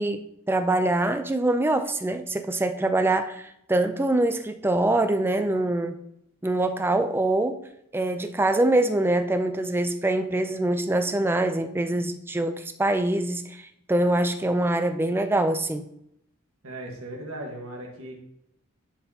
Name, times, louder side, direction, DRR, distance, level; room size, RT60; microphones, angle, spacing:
voice 1, 0.0-6.0 6.4-7.6 7.9-15.9, right 2 dB, 10° right, 8 dB, 0.4 m, -24 dB
voice 2, 16.6-18.1, right 1 dB, 80° right, 0 dB, 1.6 m, -37 dB
10.0 x 4.4 x 2.8 m, 0.77 s
head